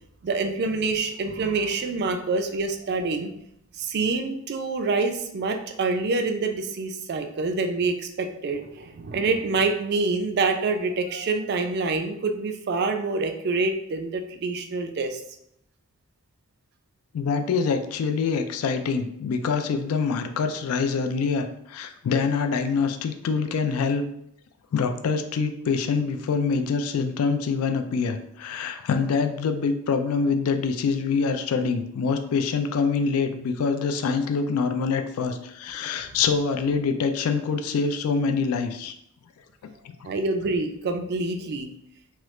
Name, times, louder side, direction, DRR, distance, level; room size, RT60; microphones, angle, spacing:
voice 1, 0.2-3.3 3.8-15.2 36.0-36.1 40.0-41.7, right 3 dB, 45° right, 7 dB, 0.3 m, -26 dB
voice 2, 17.1-24.0 24.7-38.9, left 5 dB, 75° left, 8 dB, 0.3 m, -25 dB
3.0 x 2.3 x 3.1 m, 0.75 s
head